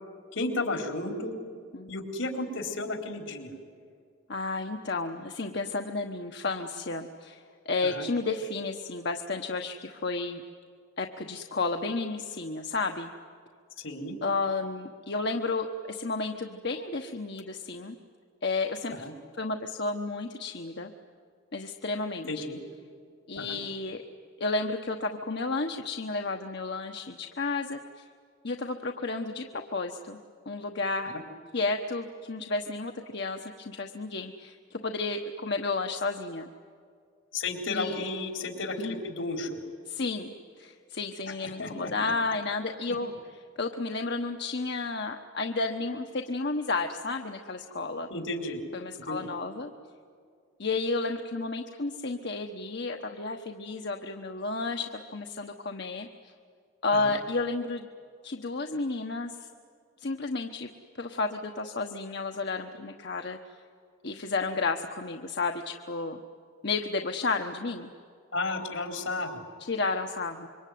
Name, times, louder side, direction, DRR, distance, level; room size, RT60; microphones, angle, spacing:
voice 1, 0.3-1.3 1.9-3.5 7.8-8.1 13.8-14.2 19.0-19.1 22.3-22.6 23.4-23.6 31.1-31.2 37.3-39.6 41.6-42.1 48.1-48.6 49.1-49.3 56.9-57.1 68.3-69.4, left 2 dB, 80° left, 5 dB, 4.1 m, -33 dB
voice 2, 4.3-10.4 11.0-13.1 14.2-18.0 18.4-19.1 19.4-20.9 21.5-22.6 23.3-24.0 24.4-28.1 28.4-30.2 30.5-31.1 31.5-36.5 37.7-38.0 38.8-39.0 39.9-43.1 43.6-48.1 48.7-49.7 50.6-56.3 56.8-57.9 58.2-59.4 60.0-60.7 61.0-63.4 64.0-66.2 66.6-67.9 69.7-70.5, left 3 dB, 55° left, 4 dB, 1.2 m, -32 dB
26.5 x 24.0 x 9.4 m, 2.2 s
head